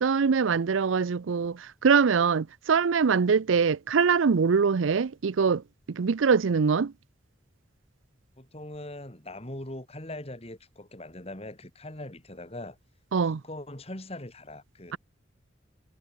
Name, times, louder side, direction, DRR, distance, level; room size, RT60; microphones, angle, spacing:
voice 1, 0.0-6.9 13.1-13.4, right 5 dB, 85° right, 0.5 m, -23 dB
voice 2, 8.4-12.8 13.2-15.0, left 1 dB, 30° left, 3.5 m, -41 dB
head